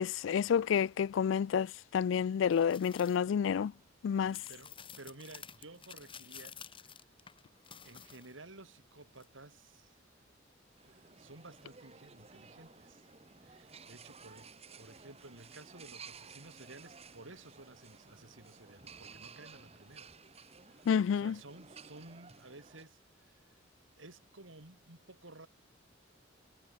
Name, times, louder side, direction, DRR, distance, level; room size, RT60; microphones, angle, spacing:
voice 1, 0.0-3.7 4.0-4.4 20.9-21.3, left 7 dB, 70° left, 0.3 m, -29 dB
sound 1, 2.5-3.2 4.3-8.5 9.2-9.3, left 7 dB, 25° left, 2.4 m, -52 dB
voice 2, 4.2-7.0 7.8-10.0 10.8-13.1 13.4-14.5 14.8-20.1 20.7-23.6 24.0-25.5, right 2 dB, 80° right, 3.5 m, -54 dB
sound 2, 10.8-22.8, right 5 dB, 30° right, 1.8 m, -55 dB
head